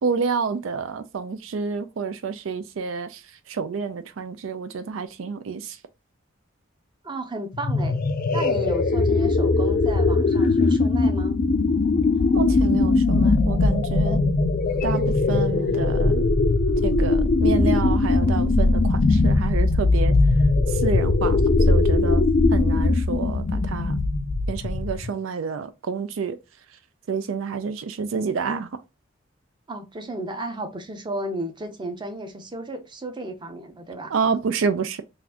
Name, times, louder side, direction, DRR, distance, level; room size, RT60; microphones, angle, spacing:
voice 1, 0.0-3.2 3.5-5.8 12.3-14.2 14.8-16.3 16.8-20.1 20.7-21.4 21.7-22.2 22.5-24.0 24.5-26.4 27.1-28.7 34.1-35.0, right 5 dB, 85° right, 0.4 m, -28 dB
voice 2, 7.0-8.0 8.3-11.4 29.7-34.1, right 1 dB, 25° right, 0.7 m, -33 dB
sound 1, 7.5-25.1, left 3 dB, 45° left, 0.4 m, -20 dB
4.0 x 2.5 x 2.8 m
head